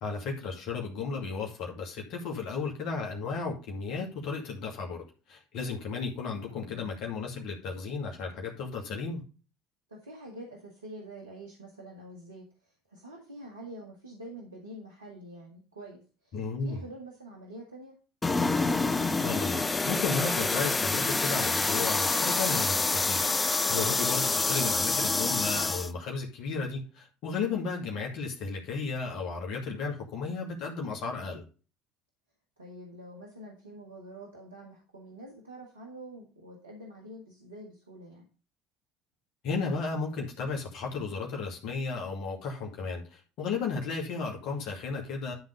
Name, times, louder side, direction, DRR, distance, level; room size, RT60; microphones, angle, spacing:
voice 1, 0.0-5.0 5.3-9.2 16.3-16.8 19.2-31.4 39.4-45.3, left 4 dB, 60° left, 0 dB, 2.3 m, -34 dB
voice 2, 6.4-7.0 9.9-17.9 27.3-27.5 32.6-38.3, right 1 dB, 90° right, 0 dB, 1.6 m, -46 dB
sound 1, 18.2-25.9, left 3 dB, 20° left, 0.8 m, -27 dB
12.0 x 4.0 x 5.3 m, 0.35 s
hypercardioid pair, 65°, 0 cm